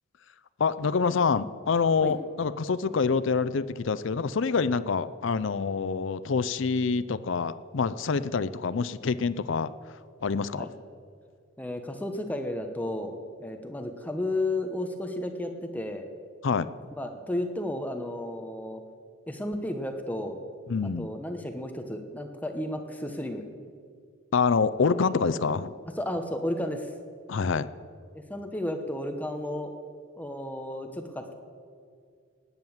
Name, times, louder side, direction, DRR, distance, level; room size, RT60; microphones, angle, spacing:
voice 1, 0.6-9.7 10.2-10.7 16.4-16.7 20.7-21.1 24.3-25.7 27.3-27.7, left 5 dB, 60° left, 14 dB, 0.5 m, -26 dB
voice 2, 11.6-13.1 13.4-16.1 17.0-18.8 19.3-20.4 20.8-23.4 24.8-25.0 26.0-26.9 28.1-29.7 30.1-31.3, left 1 dB, 5° left, 5 dB, 0.9 m, -33 dB
18.5 x 9.1 x 7.2 m, 2.2 s
head